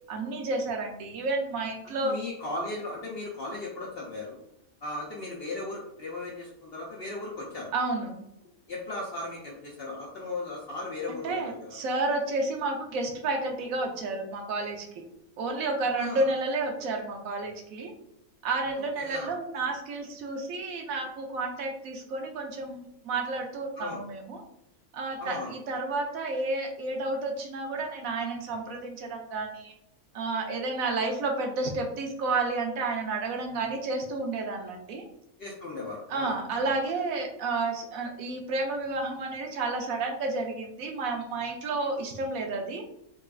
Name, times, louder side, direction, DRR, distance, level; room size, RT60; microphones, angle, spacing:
voice 1, 0.1-2.1 7.7-8.1 11.2-15.0 15.4-17.9 18.4-24.4 24.9-29.7 30.1-35.0 36.1-42.8, right 3 dB, 75° right, 2 dB, 1.0 m, -31 dB
voice 2, 2.0-4.4 4.8-7.7 8.7-11.8 16.0-16.3 19.0-19.3 23.8-24.0 25.2-25.5 35.4-36.4 36.6-36.8, left 2 dB, 60° left, -2 dB, 0.6 m, -37 dB
4.0 x 2.3 x 2.3 m, 0.80 s
omnidirectional pair, 1.5 m